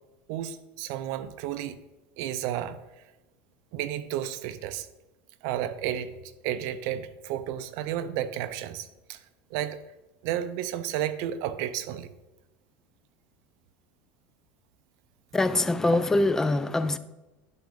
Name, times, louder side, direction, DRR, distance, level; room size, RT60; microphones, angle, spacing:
voice 1, 0.3-1.8 2.2-2.8 3.7-4.9 5.4-6.1 6.4-9.2 9.5-9.8 10.2-12.1, right 11 dB, 60° right, 0.6 m, -32 dB
voice 2, 15.3-17.0, left 2 dB, 10° left, 0.3 m, -24 dB
10.5 x 3.7 x 3.8 m
supercardioid pair, 145°, 6 cm